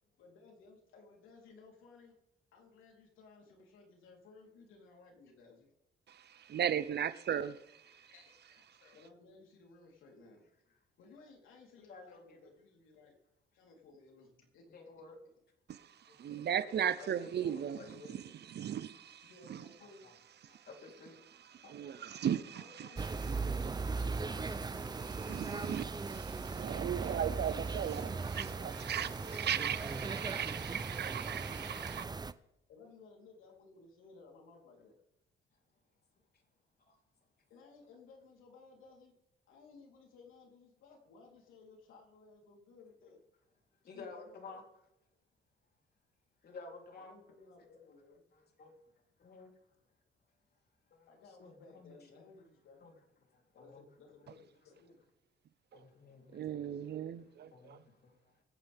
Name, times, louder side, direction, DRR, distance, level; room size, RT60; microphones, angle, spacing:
voice 1, 0.2-2.1 2.5-5.7 7.9-10.5 11.0-13.2 13.5-14.8 16.6-17.0 17.3-18.3 19.1-20.7 21.6-26.5 27.7-30.8 31.2-32.0 32.7-35.0 37.5-39.1 39.5-43.2 43.9-44.6 46.9-48.2 51.1-53.0 53.5-55.0, left 4 dB, 85° left, 3.9 m, -59 dB
voice 2, 6.1-8.1 15.7-19.6 20.5-20.7 21.3-23.1 24.9-32.0 56.3-57.8, right 9 dB, 55° right, 0.9 m, -37 dB
voice 3, 11.9-12.5 14.7-15.2 16.3-16.4 17.0-18.1 20.0-20.1 20.7-21.2 36.9-37.0 43.8-44.6 46.4-47.2 48.6-48.7 49.2-49.5 50.9-52.0 52.8-52.9 53.3-53.9 55.7-56.4 57.5-58.4, left 4 dB, 55° left, 3.8 m, -52 dB
sound 1, 23.0-32.3, right 4 dB, 20° right, 0.7 m, -38 dB
24.0 x 9.4 x 3.7 m
cardioid pair, 90°, 20 cm